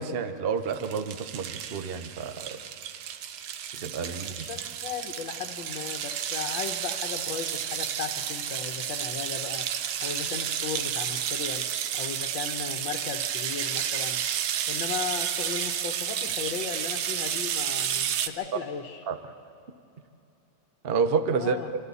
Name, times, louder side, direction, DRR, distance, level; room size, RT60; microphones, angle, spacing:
voice 1, 0.0-2.6 3.7-4.4 19.1-19.2 20.8-21.6, right 5 dB, 45° right, 9 dB, 0.7 m, -29 dB
sound 1, 0.7-18.3, right 9 dB, 85° right, 1.7 m, -31 dB
voice 2, 4.1-9.7 10.0-11.7 11.9-14.2 14.7-19.0 21.3-21.7, left 7 dB, 70° left, 2 dB, 1.7 m, -36 dB
27.5 x 26.5 x 4.1 m, 2.7 s
omnidirectional pair, 2.2 m